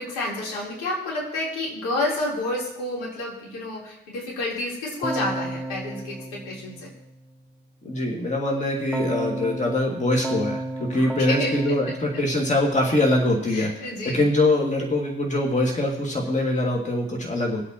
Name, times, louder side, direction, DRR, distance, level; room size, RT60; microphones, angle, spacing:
voice 1, 0.0-6.9 10.9-12.2 13.5-14.5, left 2 dB, 65° left, -4 dB, 3.8 m, -30 dB
Keyboard (musical), 5.0-7.3 8.9-13.2, right 2 dB, ahead, 0.6 m, -33 dB
voice 2, 7.8-10.6 10.9-13.7 14.1-17.6, left 1 dB, 20° left, 0 dB, 2.3 m, -23 dB
22.5 x 8.1 x 3.0 m, 0.80 s
figure-of-eight pair, 50°, 36 cm